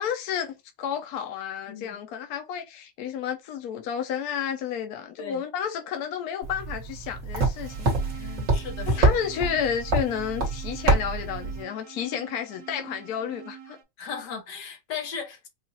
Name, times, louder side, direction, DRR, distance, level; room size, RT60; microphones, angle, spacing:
voice 1, 0.0-8.4 8.9-13.8, left 8 dB, 70° left, 1.2 m, -31 dB
voice 2, 1.7-2.0 5.2-5.4 8.2-9.1 14.0-15.5, left 6 dB, 85° left, 1.6 m, -37 dB
sound 1, 6.4-11.6, right 2 dB, 55° right, 1.7 m, -26 dB
sound 2, 7.6-13.8, right 8 dB, 70° right, 1.4 m, -45 dB
4.9 x 2.5 x 2.8 m
omnidirectional pair, 1.8 m